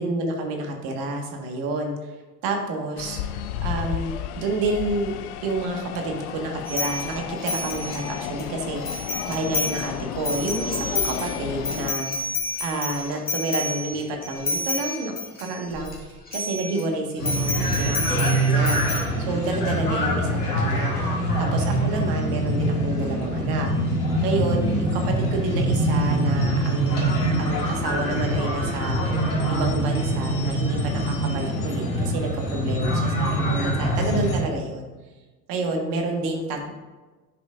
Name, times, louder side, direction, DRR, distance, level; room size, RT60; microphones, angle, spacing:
voice 1, 0.0-2.1 2.4-3.2 3.6-5.1 5.4-21.0 21.4-23.7 24.2-34.9 35.5-36.7, right 2 dB, 60° right, 2 dB, 1.6 m, -29 dB
sound 1, 3.0-11.9, left 9 dB, 70° left, 0.6 m, -33 dB
sound 2, 6.7-8.4 8.8-9.9 10.2-16.0 16.3-16.8 17.2-19.0, left 2 dB, 20° left, 1.8 m, -29 dB
sound 3, 17.2-34.4, right 1 dB, 90° left, 1.7 m, -24 dB
10.0 x 5.2 x 2.5 m, 1.2 s
hypercardioid pair, 85°, 45 cm